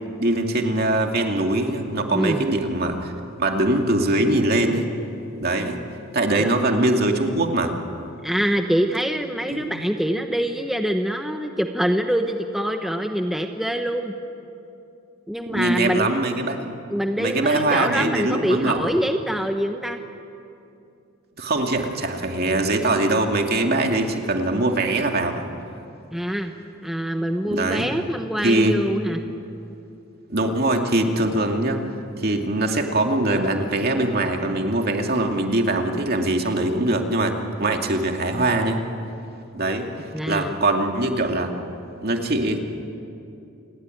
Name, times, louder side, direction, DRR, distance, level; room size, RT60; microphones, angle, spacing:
voice 1, 0.2-3.1 3.4-4.9 5.4-5.8 6.1-7.7 9.5-9.6 15.5-16.7 17.2-18.8 21.4-25.5 27.5-27.9 28.4-28.7 30.3-31.8 32.2-38.8 39.5-39.9 40.3-41.5 42.0-42.6, right 2 dB, 50° right, 3 dB, 2.4 m, -22 dB
voice 2, 2.1-2.4 6.4-6.5 8.2-14.1 15.3-16.1 16.9-20.0 26.1-26.5 26.8-29.2 40.1-40.6, equal, ahead, 5 dB, 1.0 m, -24 dB
29.0 x 19.0 x 9.2 m, 2.7 s
head